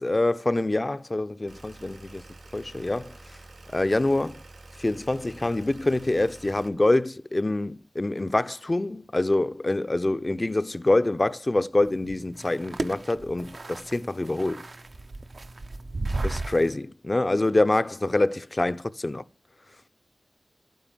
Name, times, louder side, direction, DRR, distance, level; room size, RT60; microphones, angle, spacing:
voice 1, 0.0-2.2 2.5-3.1 3.7-4.4 4.8-14.7 16.2-19.2, left 2 dB, 30° left, 0.6 m, -25 dB
sound 1, 1.5-6.7, right 2 dB, 80° right, 3.0 m, -48 dB
sound 2, 11.8-16.7, right 2 dB, 50° right, 0.8 m, -34 dB
11.5 x 9.3 x 7.3 m
wide cardioid pair, 85°, 0 cm